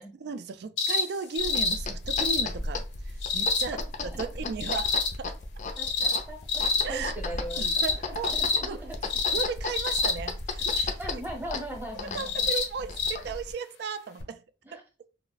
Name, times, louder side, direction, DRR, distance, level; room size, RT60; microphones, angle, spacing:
voice 1, 0.1-5.4 6.8-7.1 7.6-8.3 8.7-11.2 11.9-14.4 14.7-14.8, right 5 dB, 65° right, 0.3 m, -36 dB
sound 1, 0.8-1.1 1.4-1.8 2.1-2.4 3.2-3.7 4.6-5.1 5.8-6.2 6.5-6.9 7.5-8.0 8.2-8.6 9.1-9.5 9.7-10.1 10.6-10.9 12.2-12.7 13.0-13.1 14.2-14.3, left 4 dB, 90° left, 0.8 m, -26 dB
sound 2, 1.4-13.5, left 3 dB, 45° left, 0.4 m, -36 dB
voice 2, 5.8-7.8 8.3-9.0 11.0-12.5 14.6-14.8, right 1 dB, 10° right, 0.8 m, -39 dB
2.4 x 2.0 x 3.8 m
head